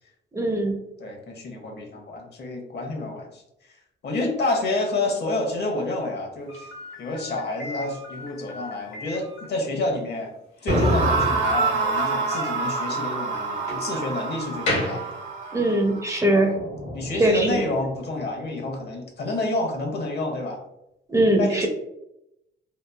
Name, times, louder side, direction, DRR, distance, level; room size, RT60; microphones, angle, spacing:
voice 1, 0.3-0.8 15.5-16.5 17.2-17.6 21.1-21.7, right 1 dB, 15° right, 2 dB, 0.5 m, -21 dB
voice 2, 1.0-3.4 4.0-6.7 7.0-10.3 10.6-15.0 16.4-16.6 16.9-20.6 21.4-21.7, left 2 dB, 55° left, 2 dB, 0.8 m, -29 dB
Slam, 6.5-15.8, left 2 dB, 75° left, 1.0 m, -36 dB
sound 1, 10.7-17.8, right 2 dB, 70° right, 0.9 m, -26 dB
2.9 x 2.2 x 2.3 m, 0.84 s
cardioid pair, 90°, 20 cm